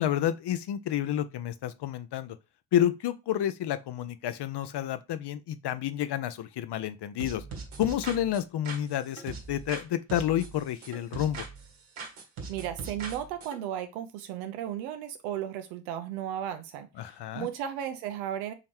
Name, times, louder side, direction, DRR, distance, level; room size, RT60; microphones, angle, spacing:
voice 1, 0.0-2.4 2.7-7.4 7.8-11.5 17.0-17.5, left 11 dB, 55° left, 0.7 m, -30 dB
sound 1, 7.2-9.8 10.1-11.7 12.0-13.6, right 4 dB, 70° right, 1.4 m, -40 dB
voice 2, 12.5-18.5, right 10 dB, 85° right, 0.8 m, -35 dB
3.9 x 3.1 x 4.4 m
hypercardioid pair, 45°, 50 cm